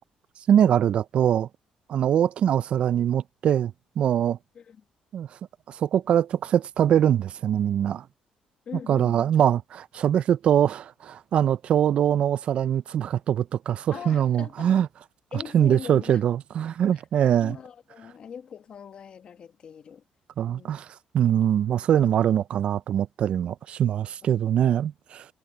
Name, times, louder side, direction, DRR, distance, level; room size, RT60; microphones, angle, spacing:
voice 1, 0.5-1.5 1.9-4.4 5.1-5.3 5.7-8.0 8.9-14.9 15.5-17.6 20.4-20.9 21.1-25.3, right 10 dB, 50° right, 0.3 m, -23 dB
voice 2, 8.6-9.6 13.9-14.7 15.3-16.2 16.9-17.0 17.4-20.0 20.5-20.8 24.2-24.3, left 7 dB, 45° left, 1.4 m, -41 dB
cardioid pair, 135°, 2 cm